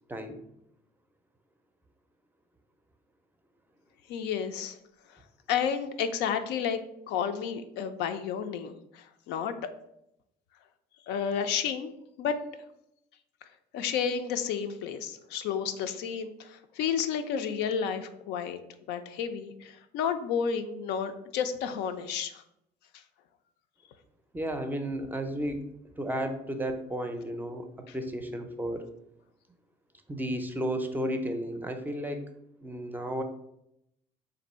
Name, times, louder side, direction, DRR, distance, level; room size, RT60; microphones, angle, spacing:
voice 1, 0.1-0.4 24.3-25.7 26.0-28.9 30.1-32.3 32.6-33.2, equal, 10° right, 6 dB, 0.4 m, -33 dB
voice 2, 4.1-4.8 5.5-6.8 7.1-9.7 11.1-11.9 12.2-12.4 13.7-18.6 18.9-22.4 27.9-28.0, left 7 dB, 90° left, 8 dB, 0.4 m, -31 dB
3.7 x 2.6 x 4.1 m, 0.80 s
cardioid pair, 110°, 17 cm